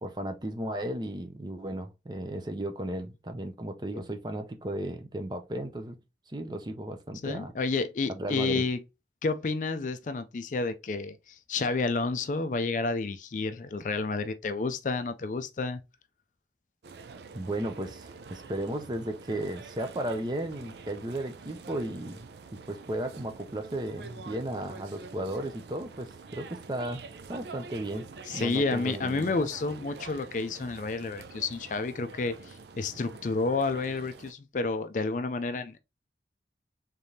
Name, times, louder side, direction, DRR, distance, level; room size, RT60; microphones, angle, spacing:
voice 1, 0.0-6.0 6.3-7.5 8.1-8.6 17.3-27.0 27.3-28.1 28.3-29.3, right 1 dB, 25° right, 0.5 m, -35 dB
voice 2, 7.2-8.8 9.2-15.8 28.3-35.8, left 3 dB, 45° left, 0.4 m, -30 dB
sound 1, 16.8-34.3, right 4 dB, 70° right, 0.4 m, -46 dB
3.6 x 3.5 x 2.7 m
head